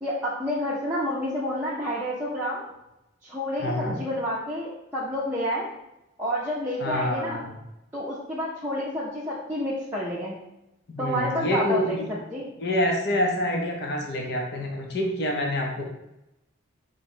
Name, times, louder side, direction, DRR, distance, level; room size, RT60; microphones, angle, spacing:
voice 1, 0.0-2.7 3.2-5.7 6.2-7.4 7.9-10.4 11.0-12.4, equal, 10° right, -8 dB, 0.6 m, -29 dB
voice 2, 3.6-4.0 6.8-7.5 10.9-12.1 12.6-15.8, left 1 dB, 50° left, 1 dB, 0.7 m, -27 dB
4.8 x 2.1 x 4.4 m, 0.89 s
head